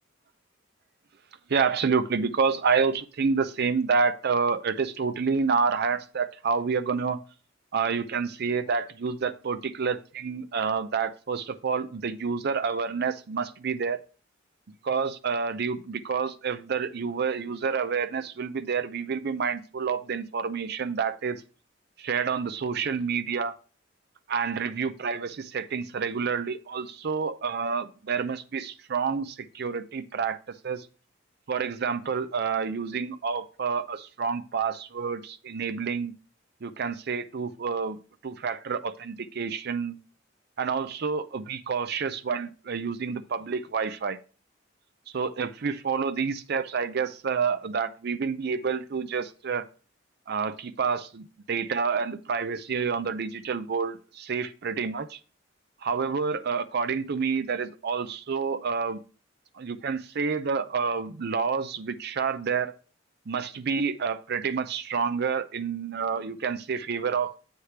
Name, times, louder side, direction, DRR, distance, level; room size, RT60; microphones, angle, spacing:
voice 1, 1.5-7.2 7.7-14.0 14.8-21.4 22.0-23.6 24.3-30.9 31.5-36.1 36.6-38.0 38.2-40.0 40.6-44.2 45.1-49.7 50.3-55.2 55.8-59.0 59.5-62.7 63.3-67.3, right 5 dB, 55° right, 11 dB, 0.5 m, -28 dB
8.2 x 3.3 x 5.6 m, 0.36 s
head